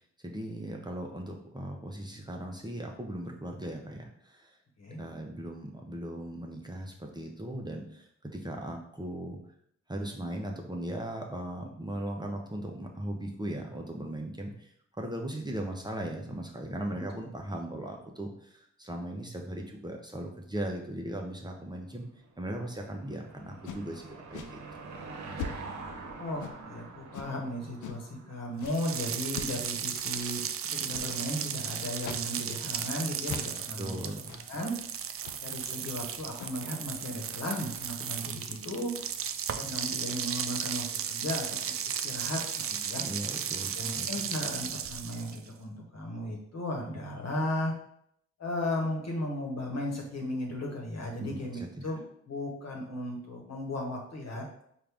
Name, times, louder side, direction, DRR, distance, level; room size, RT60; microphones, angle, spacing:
voice 1, 0.0-4.6 5.0-9.4 9.9-14.7 15.0-22.1 22.4-24.6 33.8-34.4 43.0-44.1 51.2-51.8, right 1 dB, 15° right, 1 dB, 0.8 m, -38 dB
Car passing by / Engine, 22.1-29.0, right 3 dB, 70° right, 0.9 m, -45 dB
sound 1, 23.6-23.9 24.3-24.5 25.4-25.8 26.4-26.7 27.1-27.3 27.8-28.1 28.6-28.8 29.3-29.6 30.1-30.3 30.9-31.1 32.0-32.3 32.6-32.7 33.2-33.6 34.3-34.5 35.2-35.5 36.2-36.7, left 6 dB, 75° left, 0.5 m, -41 dB
voice 2, 26.2-34.0 34.5-34.7 35.4-38.9 39.5-43.0 43.7-47.7 48.4-54.4, left 1 dB, 60° left, 0 dB, 1.3 m, -36 dB
sound 2, 28.6-45.5, right 8 dB, 50° right, 0.4 m, -35 dB
4.5 x 2.6 x 3.5 m, 0.70 s
supercardioid pair, 45°, 30 cm